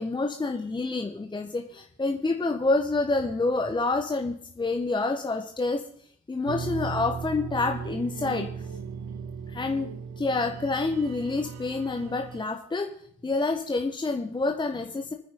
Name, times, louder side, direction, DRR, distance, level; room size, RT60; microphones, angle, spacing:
voice 1, 0.0-5.8 6.3-8.5 9.5-9.9 10.2-12.9 13.2-15.1, left 3 dB, 15° left, 4 dB, 1.3 m, -28 dB
sound 1, 6.5-12.4, right 6 dB, 50° right, 1.1 m, -37 dB
25.5 x 10.0 x 3.9 m, 0.65 s
figure-of-eight pair, 55°, 35 cm